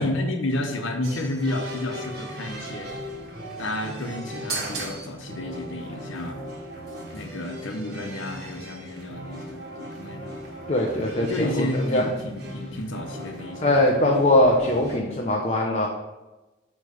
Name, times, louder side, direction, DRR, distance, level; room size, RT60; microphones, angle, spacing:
voice 1, 0.0-3.1 3.6-6.4 7.1-10.3 11.2-13.8, left 1 dB, 90° left, 4 dB, 0.9 m, -31 dB
sound 1, 1.0-15.0, right 1 dB, 55° right, 1.4 m, -37 dB
voice 2, 10.7-12.0 13.6-15.9, left 1 dB, 35° left, -1 dB, 0.7 m, -21 dB
8.2 x 3.2 x 5.0 m, 1.1 s
head